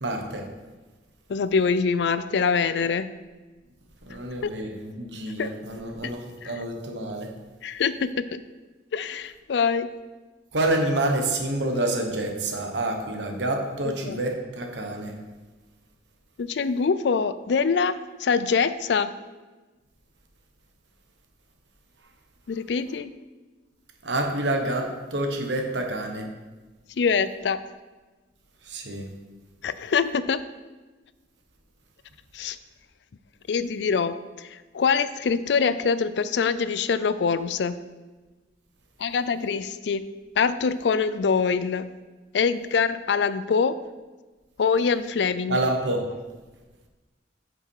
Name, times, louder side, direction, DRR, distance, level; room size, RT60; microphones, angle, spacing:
voice 1, 0.0-0.5 4.0-7.3 10.5-15.2 24.0-26.3 28.6-29.1 45.5-46.1, right 1 dB, 85° right, 3 dB, 1.3 m, -28 dB
voice 2, 1.3-3.1 4.4-4.5 5.4-5.5 6.0-6.1 6.4-6.5 7.6-8.4 8.9-9.9 13.8-14.2 16.4-19.1 22.5-23.1 27.0-27.6 29.6-30.4 32.3-32.6 33.5-37.8 39.0-40.0 40.4-41.9 42.3-43.8 44.6-45.6, left 5 dB, 75° left, 14 dB, 0.4 m, -24 dB
8.3 x 6.1 x 4.6 m, 1.2 s
head